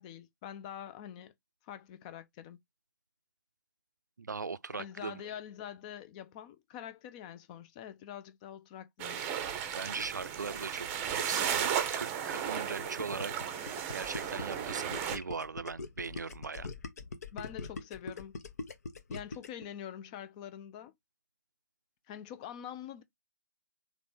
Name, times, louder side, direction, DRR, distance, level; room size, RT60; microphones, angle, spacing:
voice 1, 0.0-1.3 1.6-2.6 4.7-9.2 17.3-18.4 19.1-20.9 22.1-23.0, left 10 dB, 25° left, 0.5 m, -45 dB
voice 2, 4.2-5.2 9.7-16.7, right 4 dB, 75° right, 0.4 m, -40 dB
sound 1, 9.0-15.2, right 8 dB, 20° right, 0.7 m, -35 dB
Gurgling, 12.6-19.6, left 3 dB, 60° left, 1.0 m, -42 dB
3.9 x 3.1 x 3.5 m
figure-of-eight pair, 135°, 10 cm